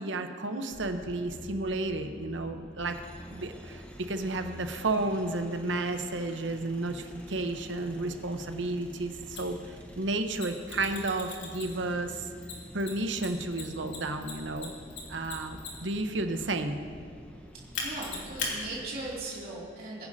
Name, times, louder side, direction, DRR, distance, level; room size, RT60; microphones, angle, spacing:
voice 1, 0.0-3.0 3.3-12.3 12.7-14.7 15.1-16.8, right 2 dB, 80° right, 7 dB, 0.9 m, -32 dB
sound 1, 0.7-19.2, equal, 5° left, 1.0 m, -48 dB
Mechanisms, 9.4-9.5 10.3-11.9 12.4-16.0 17.7-18.5, left 5 dB, 75° left, 2.9 m, -37 dB
voice 2, 17.8-20.1, right 2 dB, 50° right, -6 dB, 2.7 m, -38 dB
22.0 x 10.5 x 2.8 m, 2.2 s
head